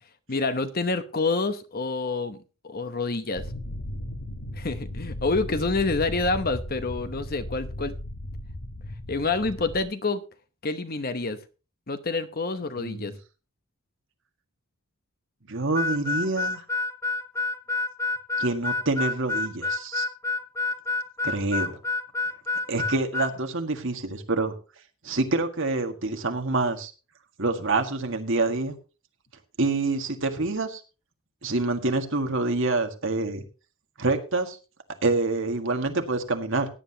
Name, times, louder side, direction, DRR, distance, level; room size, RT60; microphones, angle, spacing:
voice 1, 0.3-2.4 2.6-3.5 4.5-8.0 9.1-10.2 10.6-11.4 11.9-13.1, left 3 dB, 40° left, 11 dB, 0.9 m, -27 dB
sound 1, 3.4-9.8, left 1 dB, 80° left, 1.7 m, -36 dB
voice 2, 12.8-13.1 15.5-16.6 18.4-20.1 21.2-21.8 22.7-24.5 25.0-26.9 27.4-28.8 29.6-30.8 31.4-33.4 34.0-34.6 35.0-36.7, right 3 dB, 60° right, 5 dB, 1.8 m, -26 dB
Harmonica, 15.7-23.3, left 3 dB, 15° left, 0.5 m, -28 dB
17.0 x 9.9 x 2.9 m, 0.32 s
head